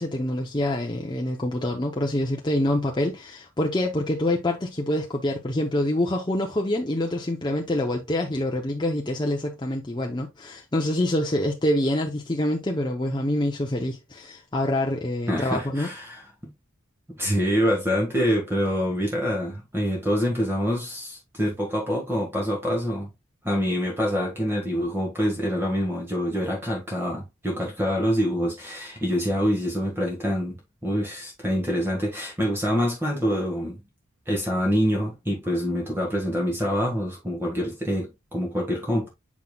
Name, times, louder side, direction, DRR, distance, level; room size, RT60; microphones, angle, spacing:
voice 1, 0.0-15.9, left 1 dB, 20° left, 0.7 m, -26 dB
voice 2, 15.3-16.5 17.1-23.1 23.4-30.6 30.8-33.8 34.3-39.1, equal, 10° right, 1.6 m, -26 dB
7.1 x 5.8 x 2.3 m
head